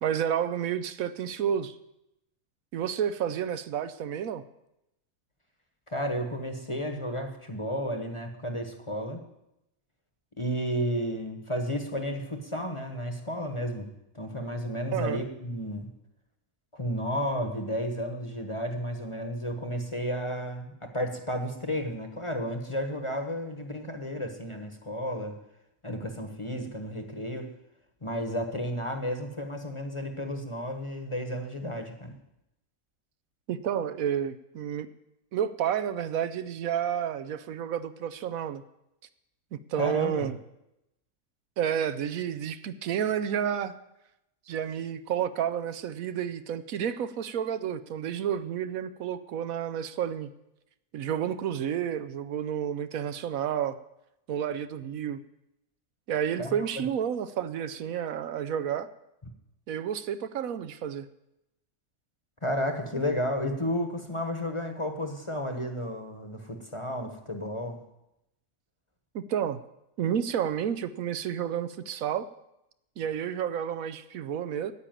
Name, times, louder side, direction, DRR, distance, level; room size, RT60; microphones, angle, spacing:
voice 1, 0.0-1.7 2.7-4.4 14.9-15.2 33.5-34.9 35.3-38.6 39.7-40.4 41.6-43.7 44.5-50.3 50.9-53.8 54.3-55.2 56.1-58.9 59.7-61.1 69.1-69.6 70.0-72.2 73.0-74.7, right 9 dB, 75° right, 12 dB, 1.1 m, -30 dB
voice 2, 5.9-9.3 10.4-15.9 16.7-25.4 25.8-27.5 28.0-32.2 39.7-40.3 56.4-56.8 62.4-67.8, equal, 25° left, 5 dB, 1.1 m, -32 dB
9.9 x 8.5 x 9.0 m, 0.87 s
omnidirectional pair, 1.5 m